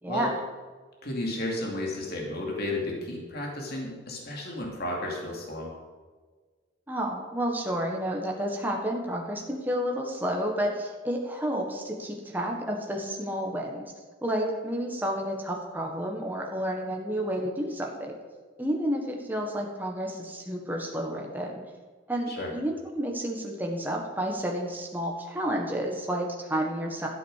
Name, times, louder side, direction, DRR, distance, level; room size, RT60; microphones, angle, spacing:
voice 1, 0.0-0.4 6.9-13.9 14.2-18.2 18.6-21.6 22.1-27.1, equal, 10° right, 0 dB, 1.5 m, -30 dB
voice 2, 1.0-5.7 22.3-22.5, left 1 dB, 50° left, -1 dB, 2.7 m, -33 dB
13.0 x 7.7 x 6.6 m, 1.4 s
head